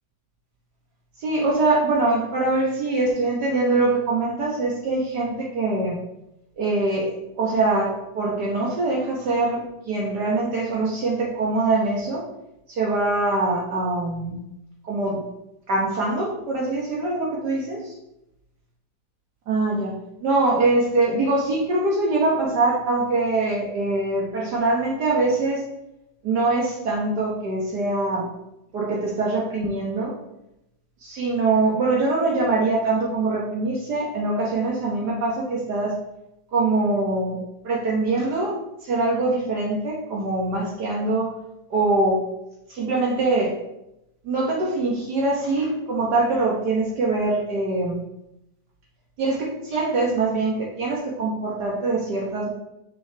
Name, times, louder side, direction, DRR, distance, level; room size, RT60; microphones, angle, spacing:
voice 1, 1.2-6.0 6.6-12.2 12.7-14.4 14.8-15.2 15.7-17.9 19.5-19.9 20.2-25.6 26.2-28.3 28.7-30.1 31.0-35.9 36.5-37.4 37.6-38.6 38.8-41.3 41.7-42.2 42.7-43.5 44.2-48.0 49.2-52.5, right 2 dB, 65° right, -2 dB, 1.6 m, -23 dB
6.2 x 5.9 x 3.3 m, 0.87 s
omnidirectional pair, 1.9 m